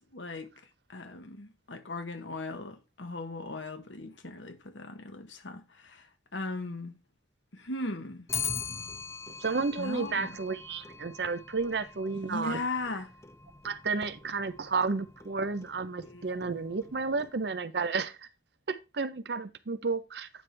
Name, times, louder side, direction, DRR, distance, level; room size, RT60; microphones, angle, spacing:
voice 1, 0.1-0.5 0.9-7.0 7.5-8.3 9.8-10.4 12.3-13.1 16.0-16.6, left 2 dB, 80° left, 1.4 m, -38 dB
Clock, 8.3-17.7, left 6 dB, 15° left, 0.4 m, -42 dB
voice 2, 9.4-12.6 13.6-18.2 18.7-20.3, right 4 dB, 60° right, 0.7 m, -32 dB
9.1 x 6.1 x 3.3 m
head